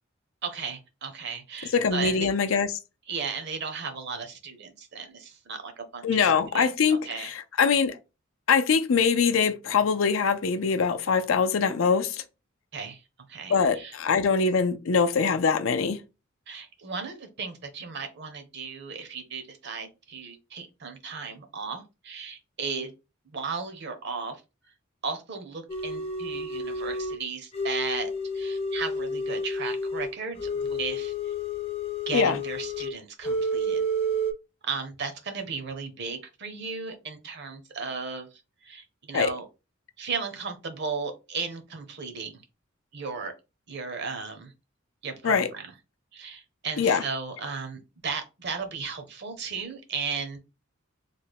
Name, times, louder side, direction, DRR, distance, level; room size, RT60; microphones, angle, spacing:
voice 1, 0.4-2.3 3.1-6.7 7.1-7.3 12.7-13.0 13.3-14.0 16.5-22.9 23.3-24.4 25.0-31.3 32.1-33.8 34.6-38.3 38.6-39.5 40.0-42.4 42.9-43.3 43.7-44.5 45.0-45.7 46.1-50.4, right 5 dB, 55° right, 0.8 m, -35 dB
voice 2, 1.7-2.7 6.0-8.0 8.5-12.2 13.5-16.0 32.1-32.4 39.1-39.3 45.2-45.5 46.8-47.0, left 5 dB, 75° left, 0.5 m, -23 dB
sound 1, 25.7-27.2 27.5-32.9 33.2-34.3, equal, 30° left, 0.6 m, -30 dB
3.2 x 2.1 x 4.0 m
head